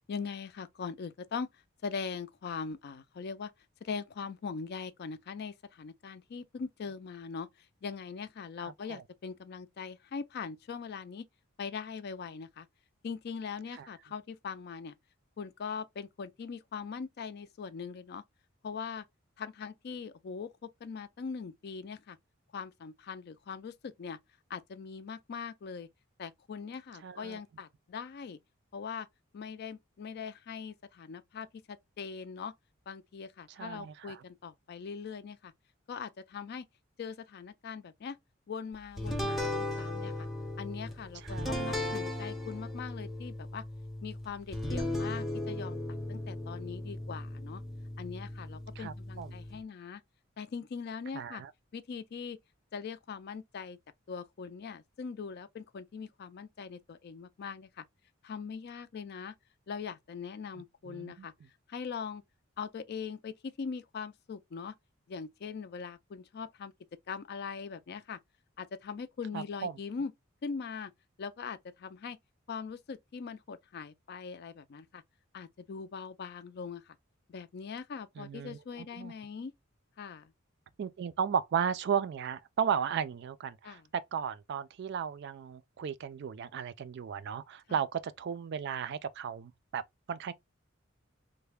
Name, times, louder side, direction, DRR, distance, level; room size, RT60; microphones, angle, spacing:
voice 1, 0.1-1.5 1.8-3.5 3.8-7.5 7.8-11.3 11.6-12.7 13.0-14.9 15.4-18.2 18.6-19.0 19.4-22.2 22.5-24.2 24.5-25.9 26.2-28.4 28.7-29.1 29.3-31.6 32.0-32.5 32.9-35.5 35.9-36.7 37.0-38.2 38.5-40.3 40.6-43.6 44.0-45.8 46.1-47.6 48.0-50.0 50.4-51.4 51.7-52.4 52.7-53.8 54.1-57.8 58.2-59.3 59.7-61.3 61.7-62.2 62.6-64.7 65.1-66.7 67.1-68.2 68.6-70.1 70.4-70.9 71.2-72.2 72.5-75.0 75.3-76.9 77.3-79.5 80.0-80.3 83.6-83.9 87.7-87.8, left 5 dB, 50° left, 0.4 m, -41 dB
voice 2, 8.6-9.0 13.8-13.9 27.0-27.4 33.6-34.2 41.2-41.7 48.8-49.4 51.1-51.5 60.9-61.3 69.3-69.8 78.2-79.1 80.8-89.8 90.1-90.3, right 7 dB, 55° right, 0.3 m, -35 dB
sound 1, 39.0-49.6, left 1 dB, ahead, 0.7 m, -37 dB
3.2 x 2.1 x 3.2 m
head